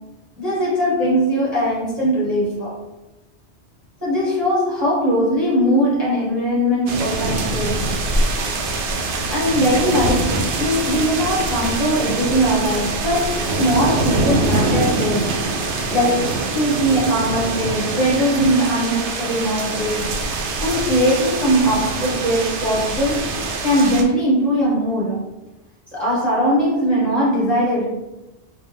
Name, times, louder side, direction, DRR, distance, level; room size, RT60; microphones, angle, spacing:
voice 1, 0.4-2.8 4.0-7.9 9.3-15.4 15.9-20.1 20.6-23.3 23.6-25.2 25.9-27.9, equal, 10° right, -9 dB, 1.1 m, -20 dB
sound 1, 6.9-24.0, right 2 dB, 90° right, 0.9 m, -24 dB
3.7 x 2.0 x 3.4 m, 0.99 s
omnidirectional pair, 1.1 m